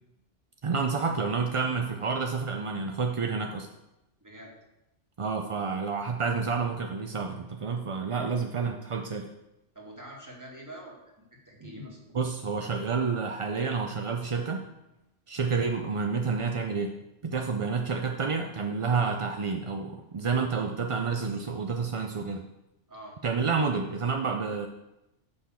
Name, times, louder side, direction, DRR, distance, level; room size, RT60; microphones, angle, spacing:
voice 1, 0.6-3.7 5.2-9.3 12.1-14.7 15.3-17.0 17.2-22.5 23.2-24.7, right 5 dB, 45° right, 4 dB, 0.4 m, -29 dB
voice 2, 4.2-4.5 7.9-8.5 9.7-11.0 11.5-12.2 22.9-23.2, equal, 15° right, -2 dB, 1.9 m, -45 dB
6.4 x 5.8 x 7.3 m, 0.91 s
omnidirectional pair, 1.2 m